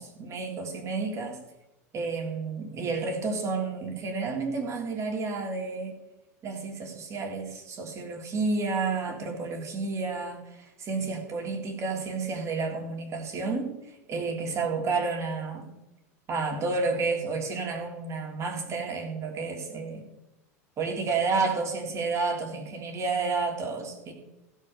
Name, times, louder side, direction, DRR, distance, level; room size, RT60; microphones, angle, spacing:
voice 1, 0.0-1.4 1.9-6.0 6.4-15.7 16.3-20.1 20.8-24.1, right 4 dB, 35° right, 1 dB, 3.4 m, -31 dB
15.5 x 5.5 x 6.7 m, 0.94 s
hypercardioid pair, 95°, 9 cm